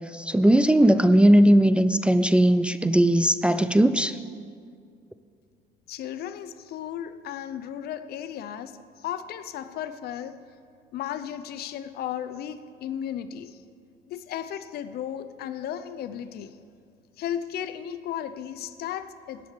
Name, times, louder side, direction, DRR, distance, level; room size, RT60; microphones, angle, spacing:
voice 1, 0.1-4.2, right 1 dB, 5° right, 11 dB, 0.3 m, -18 dB
voice 2, 5.9-10.4 10.9-13.6 14.1-16.6 17.2-19.4, left 10 dB, 70° left, 12 dB, 0.6 m, -35 dB
10.0 x 8.4 x 7.4 m, 2.2 s
cardioid pair, 110°, 17 cm